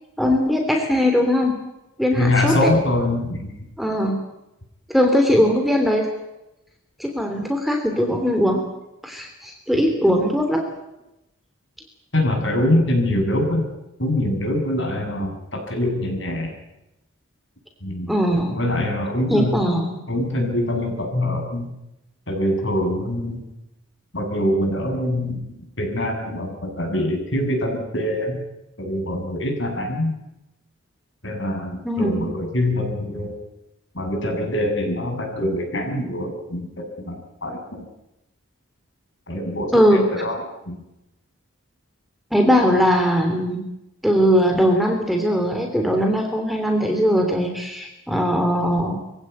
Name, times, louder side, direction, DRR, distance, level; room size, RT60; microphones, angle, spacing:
voice 1, 0.2-1.5 2.0-2.7 3.8-4.2 4.9-6.1 7.0-8.6 9.0-10.6 18.1-18.6 19.3-20.0 31.8-32.3 39.7-40.0 42.3-43.6 44.0-49.0, equal, ahead, 3 dB, 3.1 m, -20 dB
voice 2, 2.1-3.5 12.1-13.7 14.0-16.5 17.8-18.1 18.5-19.6 20.1-21.7 22.3-23.5 24.1-28.4 28.8-30.1 31.2-33.3 33.9-37.8 39.3-40.8, left 1 dB, 60° left, 2 dB, 7.4 m, -24 dB
24.0 x 16.5 x 9.4 m, 0.90 s
head